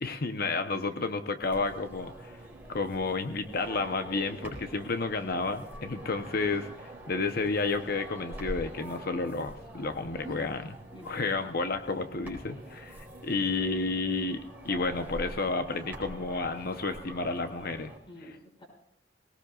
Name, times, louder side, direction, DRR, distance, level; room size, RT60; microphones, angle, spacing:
voice 1, 0.0-2.4 2.7-10.6 11.0-14.4 14.6-17.9, left 3 dB, 55° left, 8 dB, 0.9 m, -31 dB
voice 2, 0.7-1.2 10.2-10.4 10.9-11.4 18.1-18.7, equal, 30° left, 0 dB, 6.0 m, -47 dB
sound 1, 1.4-18.0, right 1 dB, 10° right, 4.1 m, -45 dB
20.5 x 18.5 x 2.5 m, 0.77 s
head